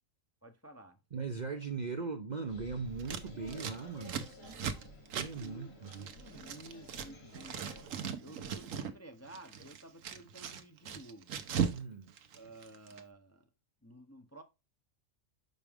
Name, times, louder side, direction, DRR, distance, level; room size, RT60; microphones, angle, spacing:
voice 1, 0.4-1.0 5.2-7.8 8.2-11.3 12.3-13.5 13.8-14.4, right 1 dB, 15° left, 0.6 m, -53 dB
voice 2, 1.1-4.3 5.1-6.1 11.7-12.1, right 4 dB, 45° right, 0.6 m, -39 dB
sound 1, 2.5-7.9, left 1 dB, 50° left, 2.0 m, -52 dB
Scissors, 3.0-7.1 7.3-8.9 9.2-11.8 12.1-13.0, right 7 dB, 75° right, 1.2 m, -38 dB
6.0 x 5.3 x 3.4 m
omnidirectional pair, 1.4 m